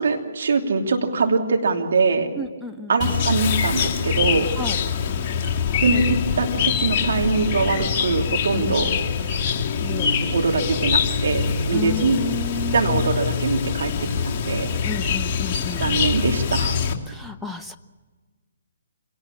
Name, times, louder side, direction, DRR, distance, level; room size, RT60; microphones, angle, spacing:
voice 1, 0.0-2.3 2.9-4.5 5.8-8.9 10.3-12.3 12.7-13.9 14.2-14.7 15.8-16.8, right 4 dB, 60° right, 2 dB, 3.0 m, -22 dB
voice 2, 2.4-3.2 4.6-4.8 8.5-8.7 9.8-10.3 11.7-13.1 14.8-16.1 17.1-17.8, left 3 dB, ahead, 2 dB, 0.8 m, -32 dB
Chirp tweet, 3.0-16.9, left 6 dB, 25° left, 2.3 m, -24 dB
27.0 x 19.0 x 7.3 m, 1.4 s
figure-of-eight pair, 135°, 0 cm